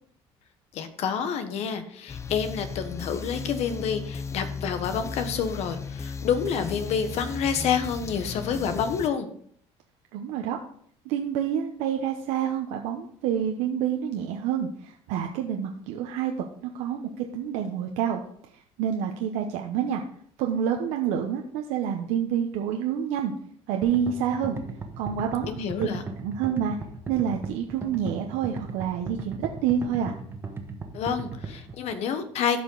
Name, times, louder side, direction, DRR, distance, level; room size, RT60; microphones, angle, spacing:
voice 1, 0.7-9.3 25.5-26.0 30.9-32.6, left 7 dB, 65° left, 9 dB, 1.3 m, -28 dB
sound 1, 2.1-9.1, left 5 dB, 25° left, 0.5 m, -36 dB
voice 2, 10.1-10.6 11.0-16.3 16.6-18.2 18.5-20.0 20.4-23.3 23.7-24.6 25.0-25.9 26.2-26.8 27.1-30.1, right 9 dB, 90° right, 3 dB, 0.9 m, -28 dB
sound 2, 23.8-31.8, right 4 dB, 20° right, 1.4 m, -37 dB
13.5 x 5.2 x 3.9 m, 0.63 s
cardioid pair, 115°, 12 cm